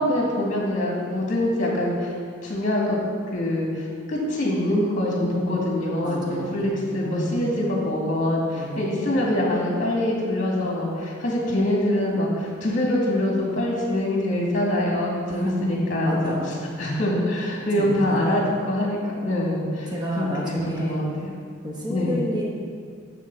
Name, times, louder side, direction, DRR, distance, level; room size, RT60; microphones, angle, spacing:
voice 1, 0.0-2.1 2.4-3.0 3.3-16.3 16.8-21.3 21.9-22.1, left 1 dB, 40° left, -2 dB, 2.0 m, -24 dB
voice 2, 6.0-7.6 8.5-8.9 15.3-16.7 17.8-18.3 19.6-21.2 21.6-22.4, equal, 20° right, -3 dB, 1.1 m, -31 dB
10.0 x 3.9 x 6.9 m, 2.1 s
head